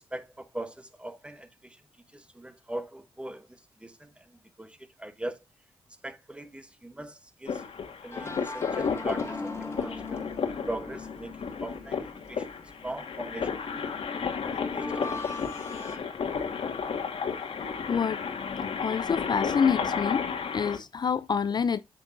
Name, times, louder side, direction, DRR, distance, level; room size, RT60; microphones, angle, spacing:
voice 1, 0.1-1.8 2.1-3.5 3.8-4.1 4.6-5.4 6.0-7.6 8.0-10.2 10.7-13.9 14.5-15.4, right 1 dB, 10° right, 1.0 m, -40 dB
sound 1, 7.5-20.8, left 6 dB, 65° left, 1.6 m, -33 dB
sound 2, 8.1-16.0, left 3 dB, 25° left, 1.8 m, -40 dB
voice 2, 17.9-18.2 18.8-20.3 20.5-21.8, left 6 dB, 45° left, 0.4 m, -27 dB
7.9 x 6.0 x 2.5 m
cardioid pair, 70°, 10 cm